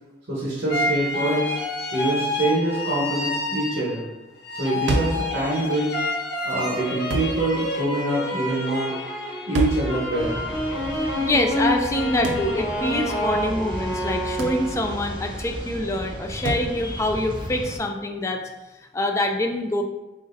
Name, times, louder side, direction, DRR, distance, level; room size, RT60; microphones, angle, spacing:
voice 1, 0.3-1.6 1.9-4.0 4.5-5.9 6.4-8.9 9.5-10.4, right 1 dB, 60° right, -7 dB, 1.1 m, -25 dB
sound 1, 0.7-4.1 4.4-15.1, left 1 dB, 65° left, 0.8 m, -28 dB
sound 2, 4.9-5.3 7.1-7.4 9.5-9.9 12.2-12.5 14.4-14.6 16.4-16.7, right 1 dB, 75° right, 0.5 m, -26 dB
sound 3, 10.2-17.8, equal, 25° right, 0.7 m, -35 dB
voice 2, 11.2-18.5 18.9-19.8, left 1 dB, 15° left, 3 dB, 0.3 m, -25 dB
4.1 x 3.8 x 2.6 m, 1.1 s
head